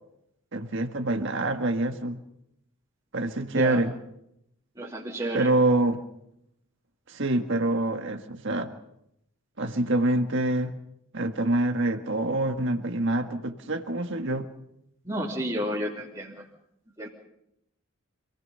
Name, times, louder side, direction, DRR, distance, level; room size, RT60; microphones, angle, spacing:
voice 1, 0.5-2.2 3.1-3.9 5.3-6.0 7.1-8.7 9.6-10.8 11.1-14.5, right 2 dB, 55° right, 6 dB, 1.7 m, -26 dB
voice 2, 4.8-5.5 15.1-16.4 17.0-17.1, equal, 20° right, -5 dB, 2.7 m, -31 dB
27.0 x 18.0 x 5.6 m, 0.79 s
head